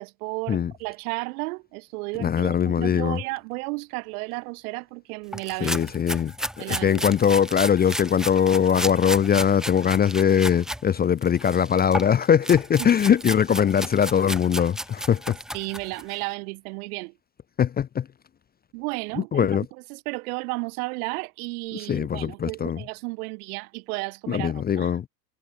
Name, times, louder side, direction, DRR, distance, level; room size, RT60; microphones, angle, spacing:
voice 1, 0.0-5.8 6.6-7.0 12.8-12.9 15.5-17.1 18.7-19.5 19.9-24.9, right 27 dB, 65° right, 1.5 m, -33 dB
voice 2, 2.2-3.2 5.6-6.3 6.6-15.4 17.6-18.1 19.2-19.6 21.9-22.8 24.3-25.1, left 8 dB, 20° left, 0.6 m, -21 dB
sound 1, 5.3-10.8 11.2-16.2, equal, ahead, 2.4 m, -33 dB
hypercardioid pair, 80°, 48 cm